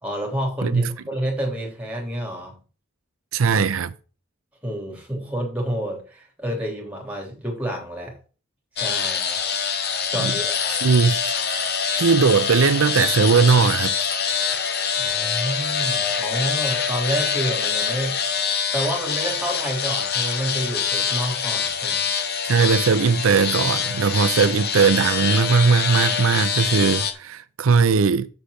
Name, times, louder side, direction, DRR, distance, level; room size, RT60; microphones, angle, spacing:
voice 1, 0.0-2.6 4.6-8.2 8.7-9.3 10.1-10.5 15.0-18.2 18.7-22.1, equal, 5° right, 3.4 m, -29 dB
voice 2, 0.6-0.9 3.3-3.9 10.2-10.3 10.7-11.7 12.0-13.9 22.4-28.3, right 5 dB, 80° right, 0.5 m, -19 dB
sound 1, 8.8-27.1, left 6 dB, 50° left, 1.2 m, -25 dB
6.6 x 5.8 x 6.6 m
head